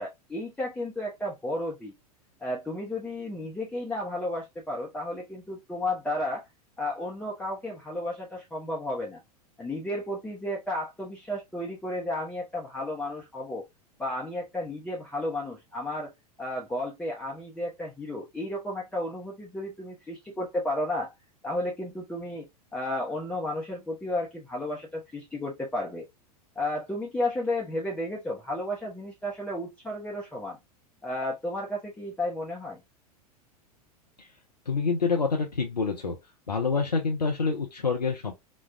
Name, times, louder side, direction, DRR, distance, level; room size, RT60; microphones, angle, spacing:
voice 1, 0.0-1.9 2.4-6.4 6.8-9.2 9.6-13.6 14.0-16.1 16.4-21.1 21.4-22.5 22.7-26.0 26.6-30.6 31.0-32.8, left 1 dB, 5° left, 0.7 m, -33 dB
voice 2, 34.7-36.2 36.5-38.3, left 4 dB, 85° left, 0.7 m, -27 dB
4.1 x 2.3 x 2.5 m
figure-of-eight pair, 90°, 20 cm